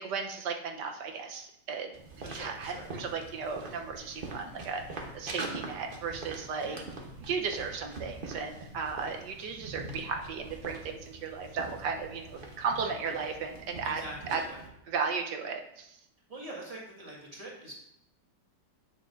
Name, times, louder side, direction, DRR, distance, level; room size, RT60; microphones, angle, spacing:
voice 1, 0.0-1.9 2.3-6.8 7.3-14.0 14.3-14.4 14.9-16.0, right 5 dB, 70° right, 4 dB, 1.4 m, -35 dB
sound 1, 1.9-14.7, right 2 dB, 40° right, 0.9 m, -43 dB
voice 2, 2.2-2.9 6.6-6.8 13.8-14.6 16.3-17.8, right 1 dB, 20° right, -3 dB, 1.6 m, -44 dB
9.2 x 6.4 x 2.5 m, 0.76 s
omnidirectional pair, 2.0 m